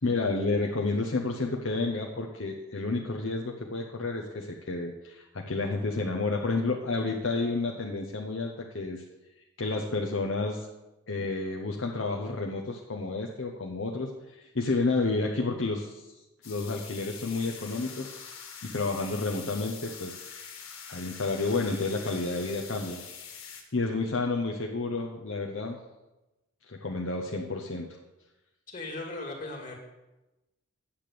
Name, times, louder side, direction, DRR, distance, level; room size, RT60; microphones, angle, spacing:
voice 1, 0.0-9.0 9.6-10.7 11.1-16.0 16.4-18.1 18.6-20.2 20.9-23.0 23.7-25.8 26.7-27.9, left 3 dB, 65° left, 1 dB, 0.9 m, -30 dB
sound 1, 16.4-23.6, left 6 dB, 85° left, 1.9 m, -44 dB
voice 2, 28.7-29.7, left 2 dB, 35° left, 0 dB, 2.2 m, -37 dB
8.6 x 6.8 x 7.6 m, 1.0 s
head